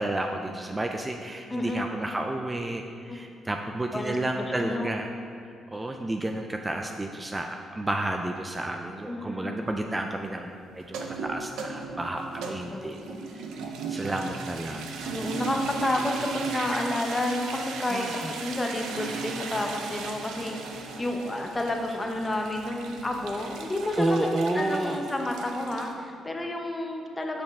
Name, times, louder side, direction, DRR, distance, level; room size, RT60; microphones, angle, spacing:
voice 1, 0.0-5.1 5.7-13.0 13.3-13.5 13.9-14.9 17.9-18.3 24.0-25.0, right 1 dB, 20° right, 4 dB, 0.3 m, -31 dB
voice 2, 1.5-1.8 3.1-3.3 3.9-4.9 9.1-9.6 12.7-13.2 15.0-27.4, left 1 dB, 20° left, 2 dB, 0.7 m, -31 dB
sound 1, 10.8-25.9, right 4 dB, 90° right, 0.6 m, -36 dB
6.9 x 5.2 x 3.5 m, 2.6 s
cardioid pair, 90°, 0 cm